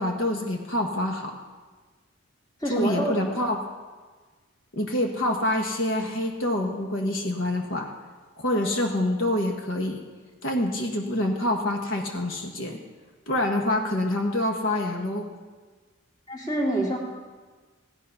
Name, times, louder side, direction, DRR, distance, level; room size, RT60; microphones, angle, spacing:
voice 1, 0.0-1.4 2.6-3.6 4.7-7.9 8.4-10.0 10.4-12.8 13.3-15.3, left 1 dB, 60° left, 2 dB, 1.2 m, -26 dB
voice 2, 2.6-3.1 16.3-17.0, right 1 dB, 20° left, -2 dB, 2.1 m, -26 dB
15.5 x 10.0 x 5.5 m, 1.4 s
head